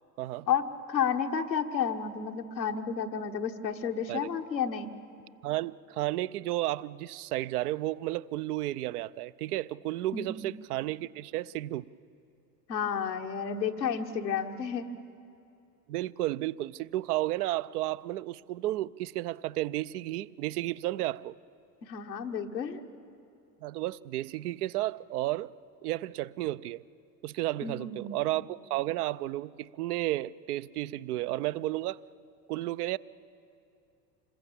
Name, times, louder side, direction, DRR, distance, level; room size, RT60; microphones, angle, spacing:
voice 1, 0.5-4.9 10.1-10.5 12.7-14.9 21.8-22.8 27.6-28.2, left 7 dB, 85° left, 1.4 m, -31 dB
voice 2, 5.4-11.9 15.9-21.3 23.6-25.5 25.8-26.8 27.2-32.0 32.5-33.0, right 16 dB, 65° right, 0.6 m, -32 dB
26.5 x 21.5 x 7.3 m
figure-of-eight pair, 75°, 49 cm